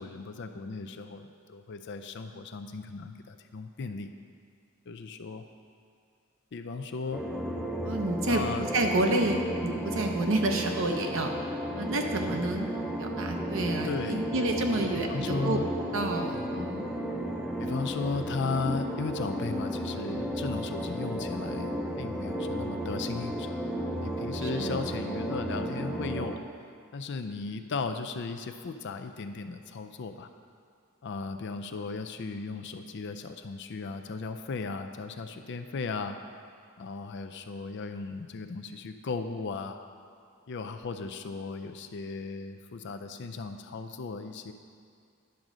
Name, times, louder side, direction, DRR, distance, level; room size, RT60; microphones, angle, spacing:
voice 1, 0.0-4.1 4.9-5.4 6.5-7.2 8.3-8.7 13.8-14.2 14.8-15.7 16.3-16.5 17.6-26.3 26.9-30.3 31.0-36.2 36.8-39.8 40.5-44.5, left 4 dB, 55° left, 7 dB, 0.4 m, -36 dB
sound 1, 7.1-26.4, equal, 5° right, 0.6 m, -33 dB
voice 2, 7.8-8.4 8.7-11.3 11.8-12.7 13.0-15.6 15.9-16.9 24.4-24.8, right 2 dB, 65° right, 3 dB, 0.8 m, -29 dB
10.5 x 3.9 x 6.1 m, 2.4 s
head